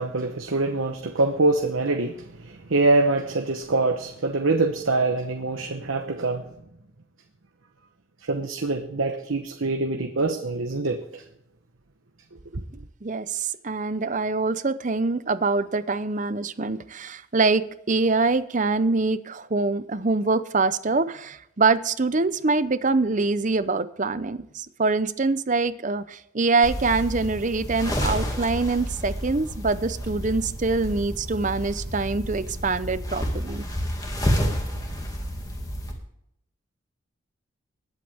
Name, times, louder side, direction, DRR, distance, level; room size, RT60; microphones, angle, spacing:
voice 1, 0.0-6.4 8.3-11.2 12.5-12.6, right 2 dB, 75° right, 1.0 m, -24 dB
voice 2, 13.0-33.6, right 3 dB, 35° right, 0.6 m, -24 dB
sound 1, 26.6-35.9, equal, 15° left, 2.1 m, -30 dB
20.5 x 8.2 x 3.5 m
head